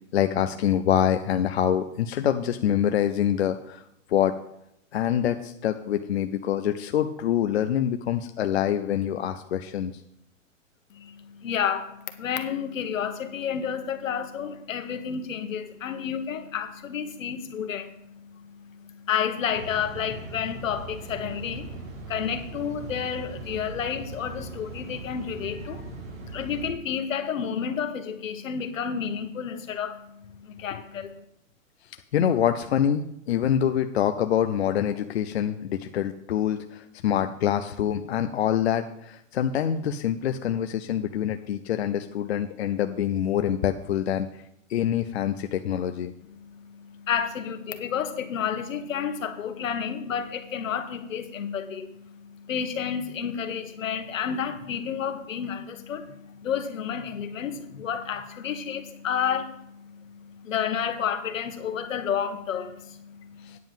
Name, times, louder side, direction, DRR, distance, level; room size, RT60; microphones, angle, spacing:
voice 1, 0.1-4.3 4.9-10.0 30.7-30.8 31.9-44.4 44.7-46.1 63.4-63.6, left 10 dB, 55° left, 7 dB, 0.6 m, -25 dB
voice 2, 10.9-17.9 18.8-21.8 22.1-25.9 26.3-30.0 30.4-31.1 46.4-51.9 52.2-63.6, left 8 dB, 75° left, 7 dB, 1.5 m, -31 dB
sound 1, 19.5-26.7, right 3 dB, 80° right, 3.7 m, -40 dB
9.5 x 5.3 x 7.4 m, 0.78 s
hypercardioid pair, 170°, 39 cm